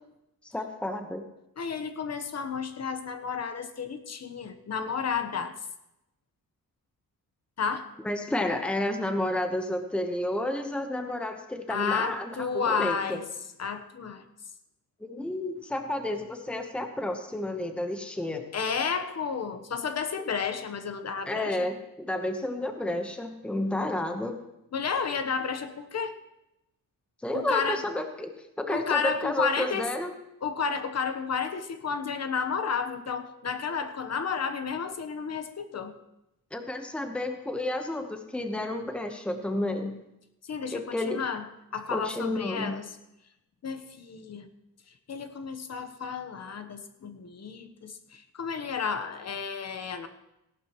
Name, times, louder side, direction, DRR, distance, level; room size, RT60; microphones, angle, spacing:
voice 1, 0.4-1.2 8.0-13.2 15.0-18.4 21.3-24.4 27.2-30.1 36.5-39.9 40.7-41.2 41.9-42.8, left 1 dB, 5° left, 5 dB, 1.0 m, -31 dB
voice 2, 1.6-5.5 7.6-7.9 11.7-13.2 13.6-14.2 18.5-21.7 24.7-26.2 27.3-27.8 28.7-29.9 30.4-35.9 40.5-41.4 41.7-43.0 43.6-44.5 45.1-50.1, left 6 dB, 45° left, 9 dB, 1.0 m, -32 dB
17.5 x 11.5 x 3.0 m, 0.87 s
wide cardioid pair, 120°, 35 cm